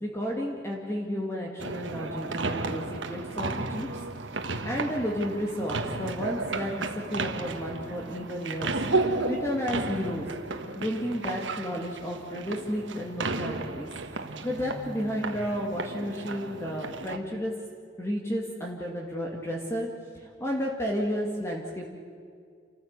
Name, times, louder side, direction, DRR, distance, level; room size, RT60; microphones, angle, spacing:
voice 1, 0.0-3.9 4.5-8.8 9.3-10.3 10.8-13.9 14.4-17.5 18.0-19.9 20.1-21.9, equal, 15° left, -1 dB, 2.1 m, -32 dB
sound 1, 1.6-17.2, right 3 dB, 75° right, 1.4 m, -33 dB
29.0 x 14.5 x 8.2 m, 2.2 s
head